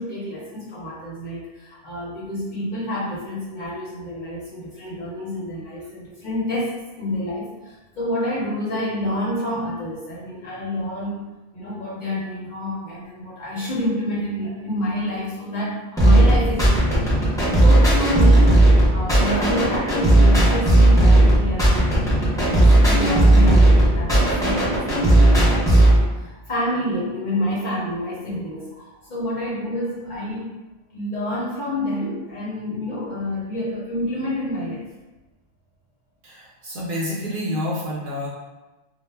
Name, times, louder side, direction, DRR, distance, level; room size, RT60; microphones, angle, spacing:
voice 1, 0.0-30.5 30.9-34.9, left 1 dB, 55° left, -6 dB, 0.6 m, -28 dB
sound 1, 16.0-26.0, right 1 dB, 5° left, 0.4 m, -15 dB
voice 2, 36.2-38.3, left 1 dB, 55° right, -6 dB, 0.7 m, -28 dB
2.0 x 2.0 x 3.2 m, 1.1 s
omnidirectional pair, 1.2 m